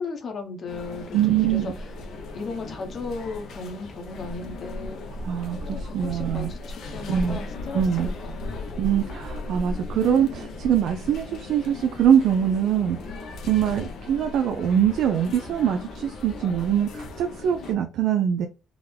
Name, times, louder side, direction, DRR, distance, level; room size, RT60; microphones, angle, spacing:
voice 1, 0.0-1.9 2.3-5.0 5.7-8.6, left 4 dB, 55° left, 1.0 m, -36 dB
sound 1, 0.7-17.7, left 2 dB, 75° left, 0.8 m, -36 dB
voice 2, 1.1-1.7 5.2-6.5 7.1-7.4 7.7-8.1 8.8-13.0 13.5-18.5, right 9 dB, 80° right, 0.4 m, -23 dB
3.7 x 2.1 x 3.2 m
cardioid pair, 90°, 0 cm